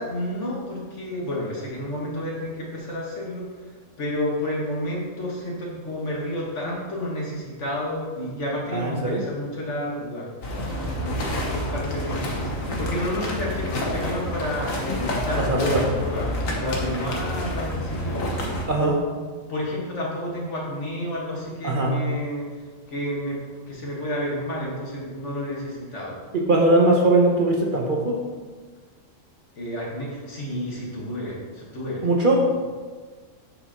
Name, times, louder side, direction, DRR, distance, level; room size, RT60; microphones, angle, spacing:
voice 1, 0.0-3.4 4.0-10.3 11.0-18.2 18.8-18.9 19.5-22.5 22.9-23.4 23.7-26.1 29.6-32.0, equal, 65° left, -4 dB, 1.9 m, -30 dB
voice 2, 8.7-9.2 15.4-15.8 18.7-18.9 21.6-21.9 26.3-28.2 32.0-32.5, right 2 dB, 45° right, 0 dB, 0.9 m, -20 dB
sound 1, 10.4-18.7, left 1 dB, 90° left, 1.5 m, -28 dB
7.9 x 6.7 x 3.0 m, 1.4 s
omnidirectional pair, 1.3 m